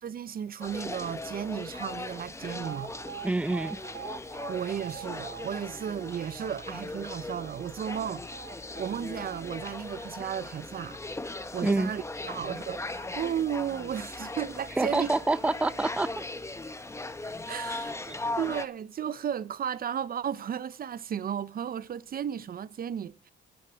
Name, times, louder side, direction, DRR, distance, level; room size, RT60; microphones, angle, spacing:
voice 1, 0.0-2.9 4.5-8.3 8.8-11.0 11.5-15.1 17.5-23.3, right 9 dB, 50° right, 0.6 m, -34 dB
sound 1, 0.6-18.7, left 2 dB, 15° left, 0.9 m, -39 dB
Alarm, 2.6-10.7, right 10 dB, 65° right, 0.9 m, -45 dB
voice 2, 3.2-3.8 11.6-11.9 14.8-16.2 18.1-18.2, right 2 dB, 5° right, 0.5 m, -27 dB
9.4 x 8.4 x 8.7 m
cardioid pair, 90°, 20 cm